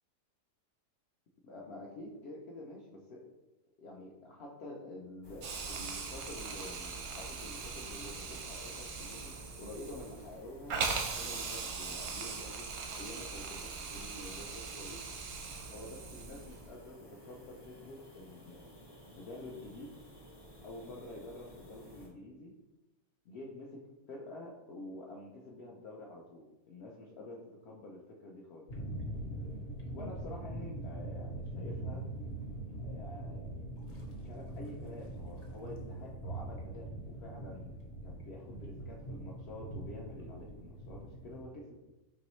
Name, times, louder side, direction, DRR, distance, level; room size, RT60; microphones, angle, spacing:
voice 1, 1.4-3.3 3.8-9.3 9.6-10.9 11.2-12.7 12.9-15.0 15.7-18.7 19.1-20.0 20.6-22.5 23.2-23.8 24.1-28.7 29.9-32.0 32.8-33.7 34.2-36.9 37.2-37.7 38.0-41.8, left 2 dB, 70° left, -3 dB, 0.6 m, -48 dB
sound 1, 5.2-22.1, right 1 dB, 25° left, 0.5 m, -54 dB
Hiss, 5.4-16.7, right 4 dB, 65° right, 0.7 m, -40 dB
sound 2, 28.7-41.4, right 1 dB, 55° left, 1.0 m, -42 dB
4.6 x 3.0 x 3.0 m, 1.0 s
omnidirectional pair, 1.7 m